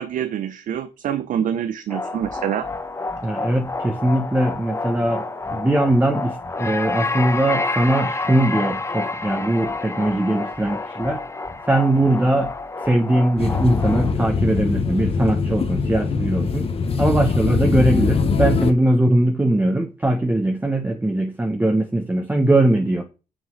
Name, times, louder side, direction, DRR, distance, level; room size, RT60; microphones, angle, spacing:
voice 1, 0.0-2.7, right 9 dB, 75° right, 0.9 m, -26 dB
sound 1, 1.9-14.1, left 3 dB, 20° left, 1.3 m, -29 dB
voice 2, 3.2-5.2 5.5-11.2 11.7-12.5 12.8-16.7 17.0-23.0, right 1 dB, 15° right, 1.3 m, -20 dB
sound 2, 13.4-18.7, left 5 dB, 45° left, 1.3 m, -22 dB
7.3 x 6.3 x 6.4 m
cardioid pair, 105°, 14 cm